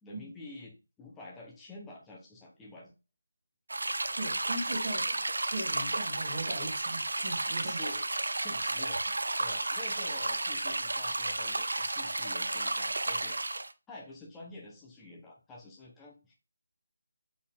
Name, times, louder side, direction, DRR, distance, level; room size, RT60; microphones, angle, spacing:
voice 1, 0.0-2.9 7.5-8.1 8.3-13.5 13.9-16.3, left 2 dB, 5° left, -4 dB, 0.9 m, -48 dB
sound 1, 3.7-13.7, right 2 dB, 85° right, 0.5 m, -32 dB
voice 2, 4.1-7.8, right 1 dB, 25° right, -2 dB, 1.8 m, -39 dB
4.2 x 3.6 x 3.5 m, 0.30 s
figure-of-eight pair, 170°, 0 cm